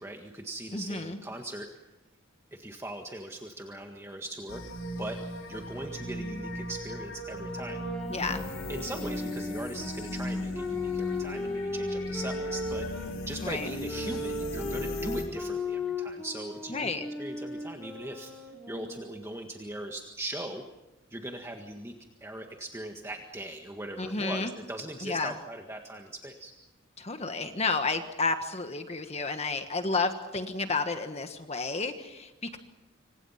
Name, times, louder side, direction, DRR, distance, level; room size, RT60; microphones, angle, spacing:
voice 1, 0.0-1.7 2.5-5.2 5.5-7.9 8.7-16.9 17.2-20.6 21.1-21.9 22.2-26.5, right 1 dB, 15° right, 3 dB, 1.7 m, -40 dB
voice 2, 0.7-1.2 8.1-8.4 13.4-13.7 16.7-17.0 24.0-24.5 25.0-25.3 27.0-32.6, left 3 dB, 30° left, 7 dB, 1.5 m, -31 dB
sound 1, 4.5-15.2, left 1 dB, 80° left, 4.8 m, -37 dB
sound 2, 7.5-13.1 13.8-19.4, left 2 dB, 5° left, 3.9 m, -36 dB
27.0 x 25.5 x 5.8 m, 1.0 s
head